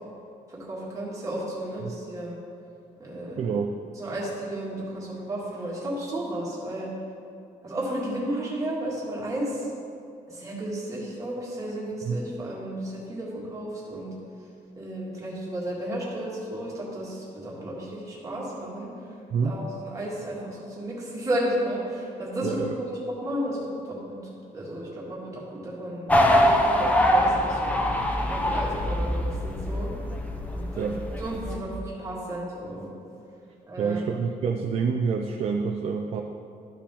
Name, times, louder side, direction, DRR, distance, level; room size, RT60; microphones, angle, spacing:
voice 1, 0.5-2.4 3.0-3.5 4.0-6.9 7.6-9.7 10.3-14.1 14.8-18.9 19.4-23.6 23.8-24.2 24.5-29.9 30.5-30.9 31.2-32.9 33.7-34.0, right 1 dB, 20° right, -5 dB, 1.8 m, -33 dB
voice 2, 3.4-3.7 12.0-12.2 19.3-19.6 22.4-22.7 30.8-31.0 33.8-36.2, right 5 dB, 45° right, 2 dB, 0.4 m, -27 dB
sound 1, 26.1-31.6, equal, 10° left, 0.5 m, -24 dB
13.0 x 5.0 x 3.5 m, 2.5 s
cardioid pair, 175°, 15 cm